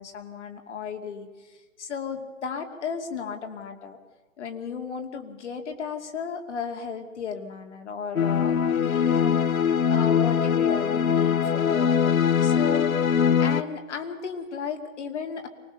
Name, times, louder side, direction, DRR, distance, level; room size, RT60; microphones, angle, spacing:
voice 1, 0.0-4.0 4.4-8.5 8.8-9.6 9.9-13.1 13.4-15.5, left 6 dB, 55° left, 4 dB, 2.7 m, -34 dB
sound 1, 8.2-13.6, left 7 dB, 85° left, 1.0 m, -22 dB
24.0 x 19.0 x 6.9 m, 1.3 s
hypercardioid pair, 150°, 40 cm